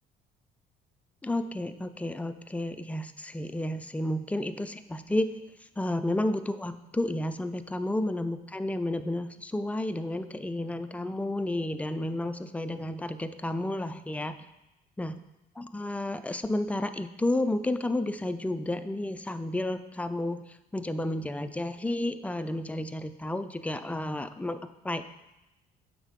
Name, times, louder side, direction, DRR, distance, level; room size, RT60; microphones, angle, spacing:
voice 1, 1.2-5.4 5.8-14.4 15.0-15.2 15.6-24.6 24.8-25.0, left 1 dB, 10° left, 10 dB, 0.3 m, -31 dB
7.3 x 5.2 x 3.6 m, 0.94 s
cardioid pair, 110°, 17 cm